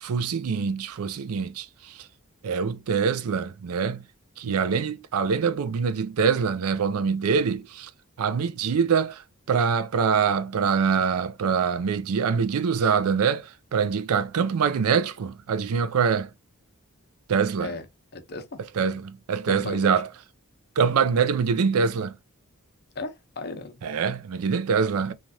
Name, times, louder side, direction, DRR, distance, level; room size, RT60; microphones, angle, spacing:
voice 1, 0.0-2.1 2.4-4.1 4.4-7.9 8.2-16.3 17.3-17.7 18.8-20.1 20.8-22.2 23.8-25.1, right 6 dB, 85° right, 0.4 m, -24 dB
voice 2, 18.1-18.6 19.5-19.9 22.9-23.8, left 3 dB, 50° left, 0.7 m, -36 dB
3.2 x 2.4 x 2.6 m
head